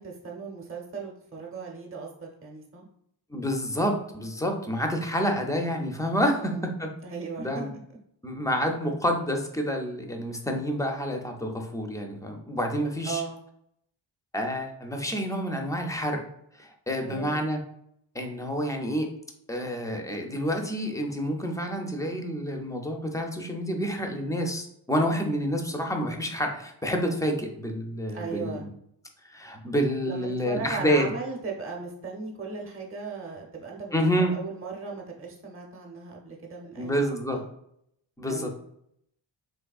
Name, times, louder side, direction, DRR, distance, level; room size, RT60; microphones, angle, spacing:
voice 1, 0.0-2.9 6.3-6.6 7.0-7.7 13.0-13.4 17.0-17.5 28.1-28.7 30.1-37.0 37.3-37.4 38.3-38.5, right 4 dB, 30° right, -1 dB, 0.7 m, -37 dB
voice 2, 3.3-6.9 7.4-7.7 8.2-13.2 14.3-16.2 16.6-17.6 18.1-19.1 19.5-28.7 29.2-31.1 33.9-34.3 36.8-37.4 38.2-38.5, equal, 10° left, 3 dB, 0.4 m, -28 dB
3.5 x 3.1 x 2.3 m, 0.72 s
cardioid pair, 105°, 46 cm